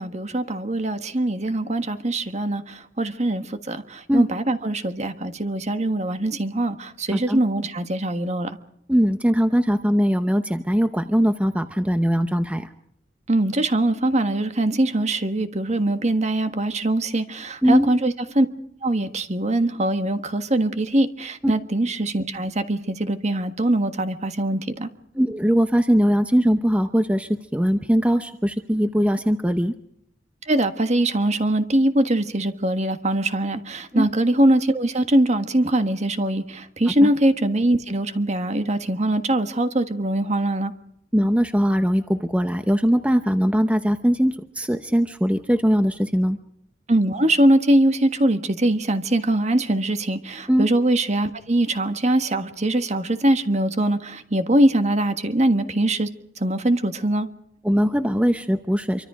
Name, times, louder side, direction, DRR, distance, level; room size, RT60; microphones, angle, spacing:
voice 1, 0.0-8.5 13.3-18.5 18.8-24.9 30.4-40.7 46.9-56.1 56.4-57.3, right 1 dB, 35° right, 1.5 m, -22 dB
voice 2, 8.9-12.7 17.6-17.9 25.1-29.7 33.9-34.1 37.0-37.1 41.1-46.4 50.5-50.7 57.6-59.1, equal, 5° right, 0.8 m, -20 dB
26.5 x 24.5 x 5.0 m
head